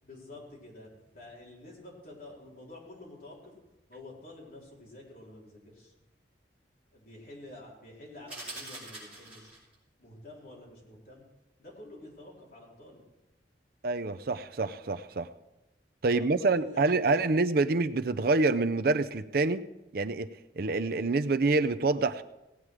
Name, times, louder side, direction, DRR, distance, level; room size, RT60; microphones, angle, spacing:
voice 1, 0.0-3.5 3.9-5.9 6.9-9.6 10.0-11.3 11.6-13.0 16.0-17.3, left 1 dB, 50° left, -4 dB, 4.3 m, -49 dB
sound 1, 8.3-9.7, right 1 dB, 5° right, 6.1 m, -43 dB
voice 2, 13.8-15.3 16.0-19.6 19.9-20.3 20.6-22.2, right 3 dB, 55° right, 11 dB, 0.5 m, -26 dB
17.5 x 9.0 x 4.8 m, 0.99 s
head